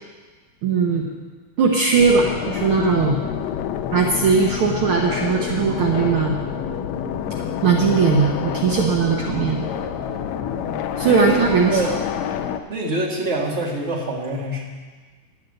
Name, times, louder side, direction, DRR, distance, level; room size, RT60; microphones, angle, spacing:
voice 1, 0.6-1.1 1.6-3.2 3.9-6.4 7.6-9.7 11.0-11.9, right 5 dB, 75° right, 0 dB, 1.2 m, -19 dB
sound 1, 2.0-12.6, left 8 dB, 85° left, 1.5 m, -28 dB
voice 2, 10.6-11.9 12.7-14.6, right 2 dB, 25° right, -2 dB, 1.6 m, -26 dB
10.5 x 9.4 x 7.8 m, 1.4 s
omnidirectional pair, 3.9 m